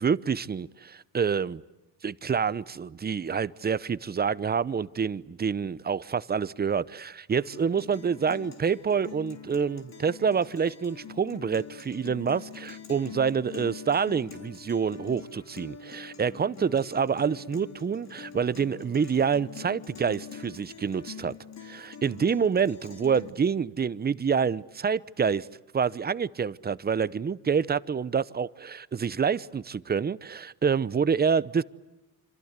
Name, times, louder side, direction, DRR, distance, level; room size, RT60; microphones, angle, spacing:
voice 1, 0.0-1.6 2.0-21.3 21.6-25.5 25.7-31.6, right 6 dB, 30° right, 0.9 m, -27 dB
Guitar, 7.3-23.3, left 6 dB, 50° left, 4.0 m, -44 dB
27.0 x 26.5 x 8.3 m
cardioid pair, 110°, 34 cm